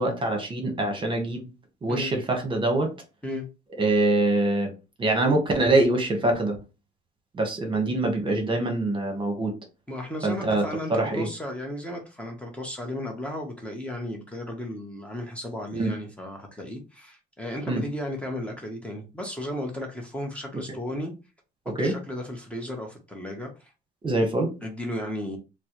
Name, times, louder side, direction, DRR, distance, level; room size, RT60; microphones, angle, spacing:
voice 1, 0.0-1.5 1.8-2.9 3.8-4.7 5.0-6.6 7.3-9.5 10.2-10.6 10.9-11.3 15.8-15.9 17.7-17.8 21.8-21.9 24.0-24.5, right 2 dB, 30° right, 1.1 m, -24 dB
voice 2, 9.9-21.1 21.8-23.7 24.6-25.4, left 1 dB, 5° left, 0.9 m, -34 dB
4.2 x 2.1 x 2.9 m
cardioid pair, 110°, 17 cm